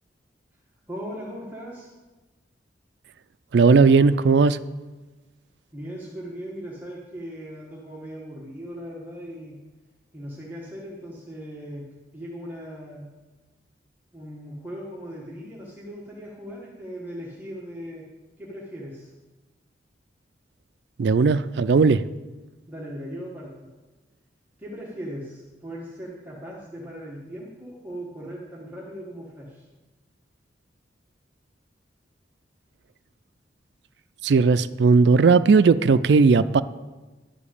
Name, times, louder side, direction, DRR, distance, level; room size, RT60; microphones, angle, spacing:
voice 1, 0.9-1.9 5.7-9.6 10.1-11.9 12.1-13.1 14.1-18.1 18.4-19.1 22.7-23.7 24.6-29.6, equal, 10° right, -4 dB, 1.4 m, -38 dB
voice 2, 3.5-4.6 21.0-22.0 34.2-36.6, right 4 dB, 65° right, 13 dB, 0.4 m, -17 dB
11.5 x 5.1 x 8.5 m, 1.2 s
head